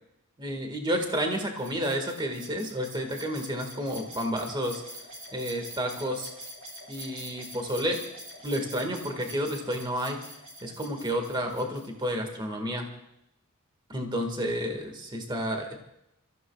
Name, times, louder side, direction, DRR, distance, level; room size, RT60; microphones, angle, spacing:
voice 1, 0.4-4.8 5.3-6.3 6.9-8.0 8.4-10.2 10.6-12.9 13.9-15.8, equal, 20° right, 4 dB, 1.8 m, -30 dB
sound 1, 1.0-12.1, right 1 dB, 60° right, 3.5 m, -45 dB
28.5 x 15.0 x 2.4 m, 0.81 s
head